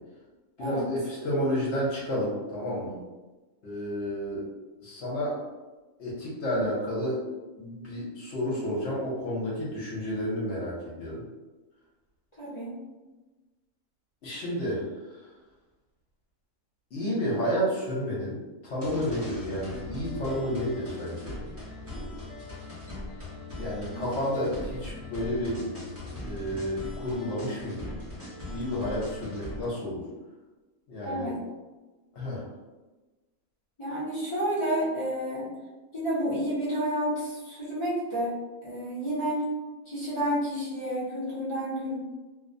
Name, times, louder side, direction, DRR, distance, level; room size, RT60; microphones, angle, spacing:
voice 1, 0.6-2.9 3.6-4.4 4.8-5.4 6.0-7.2 7.6-11.2 14.2-14.8 16.9-18.4 18.6-21.3 21.9-22.0 23.6-25.6 26.2-28.0 28.5-30.0 30.9-31.3 32.1-32.4, equal, 60° left, -5 dB, 0.9 m, -31 dB
voice 2, 12.4-12.7 23.9-24.1 31.0-31.4 33.8-35.5 35.9-38.3 38.6-39.4 39.9-42.0, equal, 35° left, -9 dB, 0.5 m, -30 dB
sound 1, 18.8-29.7, left 1 dB, 15° right, 0.5 m, -40 dB
2.6 x 2.0 x 2.5 m, 1.2 s
omnidirectional pair, 1.5 m